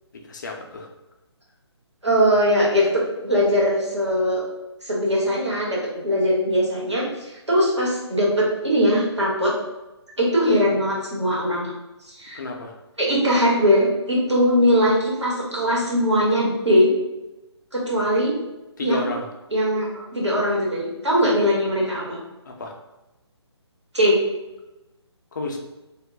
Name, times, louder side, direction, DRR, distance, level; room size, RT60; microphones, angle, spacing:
voice 1, 0.3-0.9 12.3-12.7 18.8-19.3 22.5-22.7 25.3-25.6, left 3 dB, 45° left, 1 dB, 0.5 m, -31 dB
voice 2, 2.0-4.5 4.8-9.5 10.2-11.7 12.1-12.4 13.0-16.9 17.7-18.3 18.8-19.1 19.5-22.2 23.9-24.2, equal, 80° right, -5 dB, 1.1 m, -20 dB
2.3 x 2.1 x 3.5 m, 1.0 s
figure-of-eight pair, 140°, 15 cm